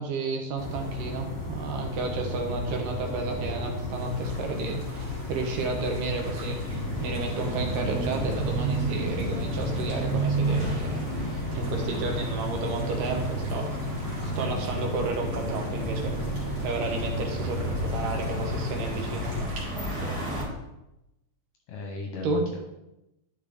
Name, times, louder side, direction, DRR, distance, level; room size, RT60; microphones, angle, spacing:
voice 1, 0.0-13.8 14.2-16.2 16.6-19.4 22.2-22.4, right 3 dB, 75° right, 3 dB, 2.5 m, -32 dB
sound 1, 0.6-19.4, left 2 dB, 30° left, 1.6 m, -34 dB
sound 2, 3.9-19.6, right 1 dB, 45° right, 2.5 m, -46 dB
sound 3, 6.7-20.4, right 2 dB, 25° right, 1.8 m, -32 dB
voice 2, 20.0-20.3 21.7-22.6, left 2 dB, 70° left, 1 dB, 1.8 m, -38 dB
11.0 x 5.2 x 3.4 m, 0.91 s
omnidirectional pair, 4.1 m